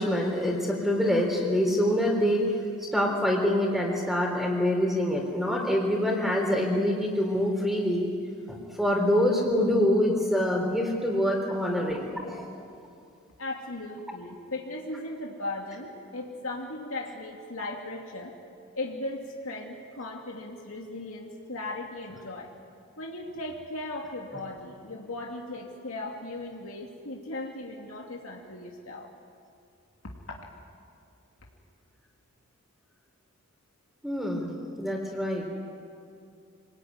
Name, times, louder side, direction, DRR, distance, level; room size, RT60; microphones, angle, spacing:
voice 1, 0.0-2.5 2.8-8.1 8.5-12.4 34.0-35.5, left 1 dB, ahead, 0 dB, 3.8 m, -25 dB
voice 2, 13.4-18.3 18.7-22.5 23.0-29.1 30.0-30.5, left 2 dB, 80° left, 0 dB, 2.6 m, -37 dB
26.5 x 19.5 x 9.7 m, 2.5 s
head